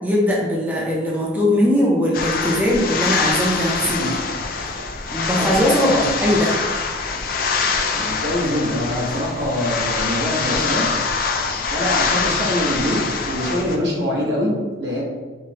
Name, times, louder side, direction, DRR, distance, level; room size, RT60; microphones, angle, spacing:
voice 1, 0.0-4.1 5.1-6.5, equal, 10° right, -4 dB, 0.5 m, -20 dB
sound 1, 2.1-13.8, left 4 dB, 50° left, 0.3 m, -24 dB
voice 2, 5.4-6.2 7.6-10.9 11.7-15.0, left 1 dB, 75° right, -4 dB, 1.0 m, -24 dB
4.8 x 2.1 x 2.8 m, 1.3 s
head